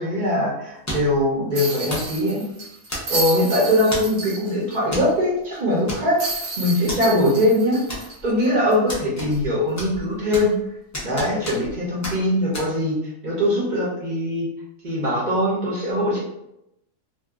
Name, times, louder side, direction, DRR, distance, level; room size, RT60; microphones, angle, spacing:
voice 1, 0.0-2.5 3.1-7.8 8.2-10.5 11.0-13.0 13.2-14.5 14.8-16.2, left 1 dB, 40° right, -6 dB, 0.8 m, -21 dB
sound 1, 0.9-1.2 1.9-2.2 2.9-3.3 3.9-4.2 4.9-5.1 5.4-5.5 5.9-6.4 6.9-7.0 7.9-8.4 8.9-9.5 9.8-10.6 10.9-11.8 12.0-12.2 12.5-12.7, equal, 30° left, 0.3 m, -31 dB
sound 2, 1.5-4.8 5.1-5.2 6.2-8.9 9.3-9.4 11.5-11.7, right 3 dB, 60° right, 1.1 m, -31 dB
2.7 x 2.4 x 2.3 m, 0.84 s
omnidirectional pair, 1.5 m